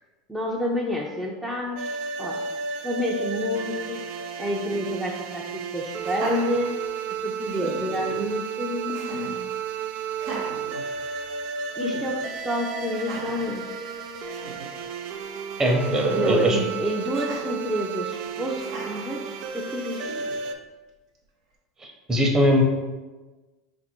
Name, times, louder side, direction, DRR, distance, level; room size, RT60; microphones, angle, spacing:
voice 1, 0.3-2.4 2.8-4.0 4.4-6.7 7.2-9.5 11.8-13.6 16.1-20.1, equal, 5° right, -4 dB, 0.6 m, -29 dB
sound 1, 1.8-20.5, right 6 dB, 60° right, 0.4 m, -33 dB
Laughter, 6.0-7.1 7.5-8.1 8.9-9.4 10.1-11.4 11.8-12.0 12.9-13.5 14.0-14.1 14.3-14.7 15.8-16.4 17.1-17.5 18.6-19.1 19.9-20.5, right 2 dB, 75° right, 1.0 m, -38 dB
voice 2, 15.6-16.6 21.8-22.6, equal, 25° right, 1 dB, 0.9 m, -21 dB
4.1 x 2.6 x 4.4 m, 1.2 s
hypercardioid pair, 85°, 2 cm